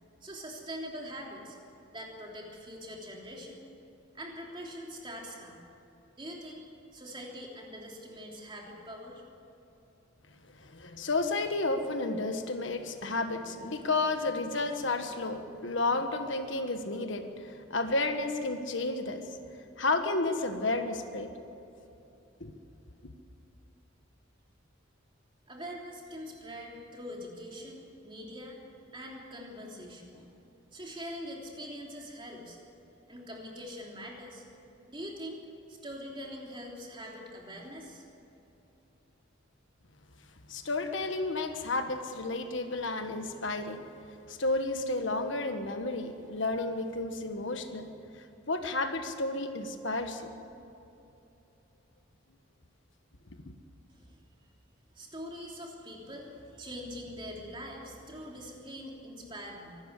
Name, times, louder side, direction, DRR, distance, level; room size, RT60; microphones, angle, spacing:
voice 1, 0.2-1.6 1.9-3.6 4.1-5.6 6.2-6.6 6.9-9.2 25.5-28.6 28.9-30.3 30.7-32.6 33.1-34.4 34.9-35.4 35.7-38.0 53.9-54.2 54.9-59.8, equal, 25° right, -1 dB, 3.3 m, -43 dB
voice 2, 10.6-19.2 19.8-21.3 22.4-22.5 40.5-43.8 44.3-47.9 48.5-50.3 53.5-53.6, left 2 dB, 65° left, 7 dB, 1.4 m, -32 dB
24.5 x 13.0 x 8.3 m, 2.9 s
head